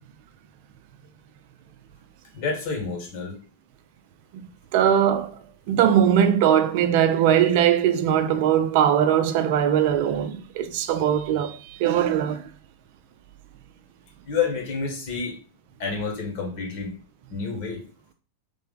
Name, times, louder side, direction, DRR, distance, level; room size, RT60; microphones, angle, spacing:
voice 1, 2.3-3.4 14.3-15.4 15.8-16.9 17.3-17.8, left 5 dB, 45° left, 1.4 m, -29 dB
voice 2, 4.7-5.4 5.7-12.4, right 9 dB, 50° right, 0.4 m, -20 dB
3.4 x 3.3 x 3.7 m
figure-of-eight pair, 90°, 0 cm